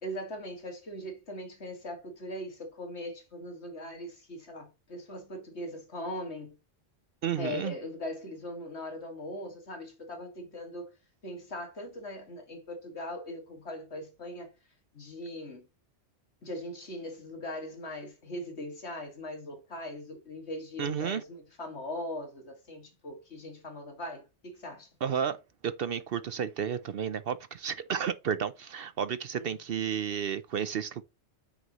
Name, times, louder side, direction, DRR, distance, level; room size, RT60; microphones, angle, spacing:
voice 1, 0.0-6.6 7.4-10.9 11.2-14.6 14.9-15.7 16.4-24.9 29.4-29.5, left 1 dB, 65° left, 2.4 m, -40 dB
voice 2, 7.2-7.7 20.8-21.2 25.0-25.4 25.6-31.0, right 8 dB, 60° right, 0.7 m, -32 dB
9.2 x 6.1 x 3.0 m
omnidirectional pair, 1.2 m